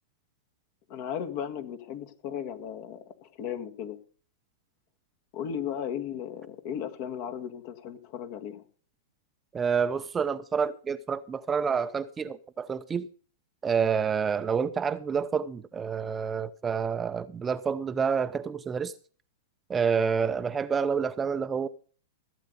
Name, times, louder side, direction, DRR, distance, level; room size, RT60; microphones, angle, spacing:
voice 1, 0.9-4.0 5.3-8.6, left 9 dB, 50° left, 1.8 m, -36 dB
voice 2, 9.5-13.1 13.6-18.9 19.7-21.7, right 6 dB, 20° right, 0.6 m, -28 dB
15.5 x 8.1 x 5.3 m
hypercardioid pair, 110°, 0 cm